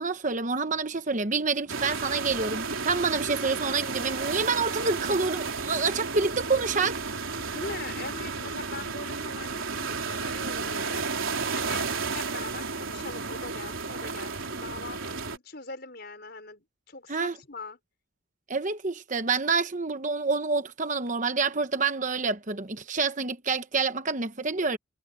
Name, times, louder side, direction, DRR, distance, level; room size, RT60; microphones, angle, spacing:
voice 1, 0.0-7.0 17.1-17.3 18.5-24.8, right 4 dB, 35° right, 1.0 m, -27 dB
sound 1, 1.7-15.4, right 4 dB, 70° right, 3.8 m, -32 dB
voice 2, 7.4-11.1 11.5-11.9 12.1-17.8, left 3 dB, 50° left, 5.8 m, -42 dB
head